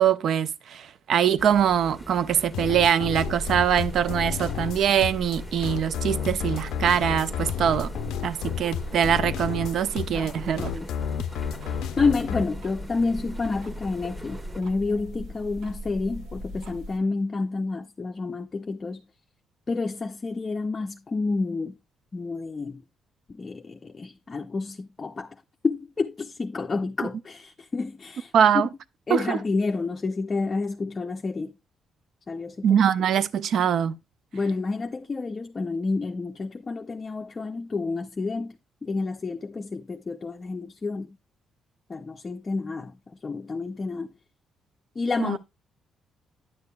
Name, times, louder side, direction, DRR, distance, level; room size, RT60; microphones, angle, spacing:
voice 1, 0.0-7.9 8.2-10.7 28.3-28.7 29.1-29.4 32.6-33.9 45.2-45.4, right 9 dB, 70° right, 0.4 m, -23 dB
sound 1, 1.4-14.6, equal, 10° right, 1.1 m, -43 dB
sound 2, 2.5-12.4, left 9 dB, 85° left, 0.4 m, -32 dB
sound 3, 3.2-17.0, equal, 90° right, 1.0 m, -39 dB
voice 2, 10.1-10.9 12.0-19.0 19.7-21.7 22.1-22.8 23.3-25.4 25.6-28.3 29.1-31.5 32.3-32.8 34.3-41.2 41.9-42.9 43.2-44.1 45.0-45.4, left 3 dB, 30° left, 0.4 m, -29 dB
9.7 x 6.6 x 2.2 m
cardioid pair, 90°, 0 cm